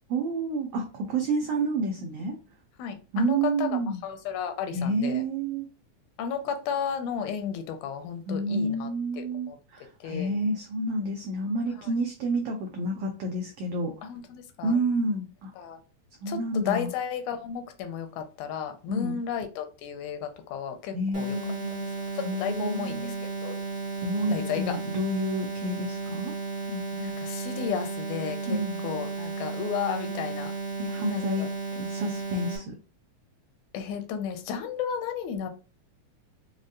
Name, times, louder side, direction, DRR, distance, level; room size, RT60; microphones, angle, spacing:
voice 1, 0.1-2.4 3.1-4.0 4.7-5.7 8.3-13.9 14.6-15.5 16.2-16.9 18.9-19.2 20.9-21.8 22.2-23.2 24.0-26.3 26.7-26.8 28.5-28.8 30.8-31.5 31.8-32.8, right 2 dB, 85° right, 1.3 m, -29 dB
voice 2, 2.8-3.7 4.0-5.2 6.2-8.9 9.2-9.6 10.0-10.4 14.0-14.8 15.6-15.8 16.3-21.4 22.3-23.1 23.4-23.6 24.3-24.8 26.9-30.5 31.1-31.5 33.7-35.5, left 7 dB, 85° left, 2.0 m, -33 dB
sound 1, 21.1-32.6, right 4 dB, 10° right, 0.4 m, -34 dB
5.0 x 2.1 x 2.6 m
omnidirectional pair, 3.4 m